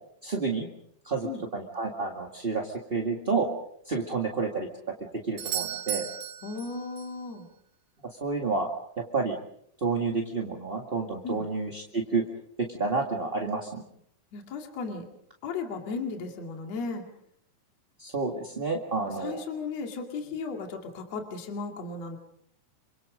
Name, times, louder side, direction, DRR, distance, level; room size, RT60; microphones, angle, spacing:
voice 1, 0.2-0.7 1.0-3.5 3.8-4.7 5.0-6.1 8.2-9.4 9.8-12.2 12.6-13.8 18.0-19.4, right 4 dB, 20° right, 1 dB, 1.6 m, -30 dB
Doorbell, 5.4-7.2 11.3-11.4, right 9 dB, 85° right, 3.2 m, -35 dB
voice 2, 6.4-7.5 11.2-11.4 14.3-15.1 15.4-17.0 19.1-22.2, left 4 dB, 55° left, 3 dB, 3.4 m, -35 dB
28.0 x 25.5 x 5.1 m, 0.71 s
omnidirectional pair, 3.7 m